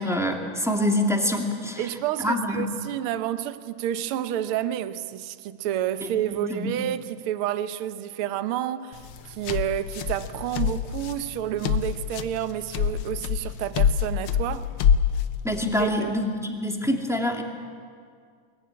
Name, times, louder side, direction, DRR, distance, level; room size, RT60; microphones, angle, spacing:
voice 1, 0.0-1.8 2.2-2.7 6.0-6.7 15.4-17.4, left 1 dB, ahead, 2.0 m, -26 dB
voice 2, 1.8-14.7 15.8-16.2, right 11 dB, 65° right, 1.4 m, -30 dB
sound 1, 8.9-15.9, left 8 dB, 70° left, 1.2 m, -26 dB
24.5 x 21.5 x 9.6 m
omnidirectional pair, 3.4 m